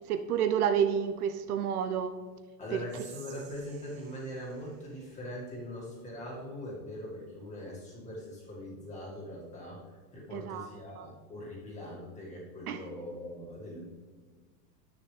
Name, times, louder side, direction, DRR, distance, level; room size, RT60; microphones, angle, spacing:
voice 1, 0.1-2.2 2.7-3.0 10.3-10.7 11.0-11.1 12.7-12.8, right 8 dB, 65° right, 9 dB, 0.7 m, -30 dB
voice 2, 2.6-9.8 10.1-13.9, left 1 dB, 15° left, -4 dB, 2.0 m, -42 dB
Whispering, 2.8-6.1, right 7 dB, 40° right, 1.6 m, -55 dB
10.0 x 9.0 x 3.4 m, 1.5 s
supercardioid pair, 165°, 49 cm